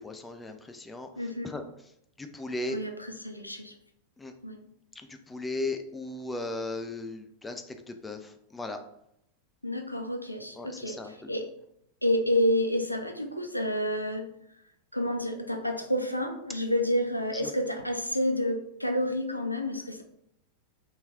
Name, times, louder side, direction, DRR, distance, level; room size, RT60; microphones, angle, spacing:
voice 1, 0.0-1.1 1.4-1.6 2.2-2.8 4.2-4.3 4.9-8.8 10.6-11.3 17.3-17.5, left 2 dB, 10° left, 6 dB, 0.3 m, -37 dB
voice 2, 1.2-1.5 2.7-3.7 4.4-4.6 9.6-11.0 11.3-11.5 12.0-14.3 14.9-20.0, equal, 90° left, 4 dB, 0.3 m, -29 dB
2.9 x 2.8 x 2.3 m, 0.77 s
figure-of-eight pair, 90°, 0 cm